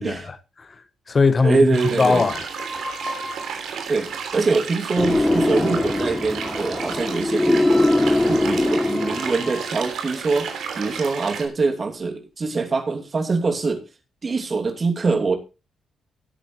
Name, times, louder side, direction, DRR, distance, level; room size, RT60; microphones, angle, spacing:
voice 1, 0.0-2.5 2.7-2.9, left 4 dB, 40° left, 1.1 m, -21 dB
voice 2, 1.4-2.2 3.9-7.7 8.3-13.8 14.2-15.4, right 4 dB, 40° right, 2.6 m, -24 dB
sound 1, 1.7-11.5, right 6 dB, 80° right, 3.1 m, -32 dB
sound 2, 2.0-4.8 5.7-6.7 7.3-11.3, equal, 10° right, 4.8 m, -39 dB
sound 3, 5.0-9.6, left 1 dB, 15° left, 0.6 m, -21 dB
17.0 x 8.8 x 3.2 m
cardioid pair, 70°, 0 cm